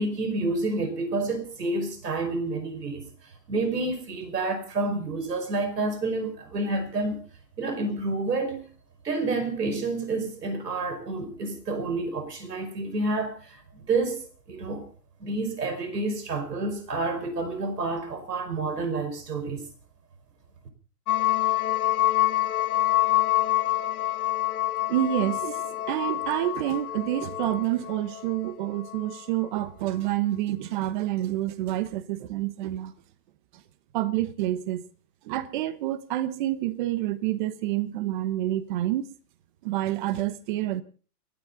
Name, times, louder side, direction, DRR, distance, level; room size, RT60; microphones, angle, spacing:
voice 1, 0.0-7.2 7.6-8.7 9.0-14.2 14.5-14.9 15.2-19.7, right 3 dB, 85° right, 5.3 m, -29 dB
sound 1, 21.1-29.2, left 14 dB, 65° left, 1.3 m, -27 dB
voice 2, 24.9-32.9 33.9-34.8 35.2-39.1 39.6-40.8, right 14 dB, 30° right, 1.0 m, -28 dB
29.5 x 10.0 x 3.9 m
hypercardioid pair, 145°, 47 cm